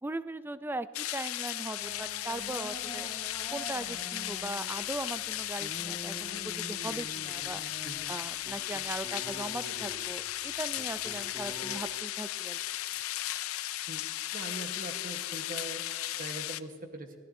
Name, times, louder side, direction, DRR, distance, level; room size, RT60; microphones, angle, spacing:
voice 1, 0.0-3.1 3.5-7.6 8.1-12.6, right 2 dB, 10° right, 13 dB, 0.3 m, -39 dB
sound 1, 0.9-16.6, left 14 dB, 90° left, 0.5 m, -36 dB
one day, 1.8-11.8, equal, 15° left, 2.2 m, -46 dB
voice 2, 14.3-15.8 16.2-17.1, right 2 dB, 40° right, 5 dB, 1.2 m, -41 dB
25.0 x 16.0 x 2.7 m, 2.1 s
head